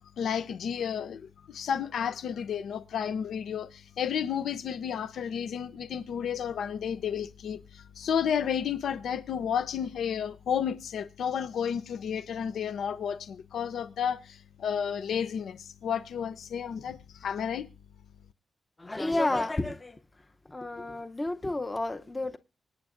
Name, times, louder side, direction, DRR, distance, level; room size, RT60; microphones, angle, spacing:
voice 1, 0.2-17.7, left 8 dB, 85° left, 0.6 m, -32 dB
voice 2, 18.8-20.0 20.5-22.4, left 2 dB, 20° left, 0.7 m, -31 dB
25.0 x 9.1 x 2.5 m
wide cardioid pair, 110°, 0 cm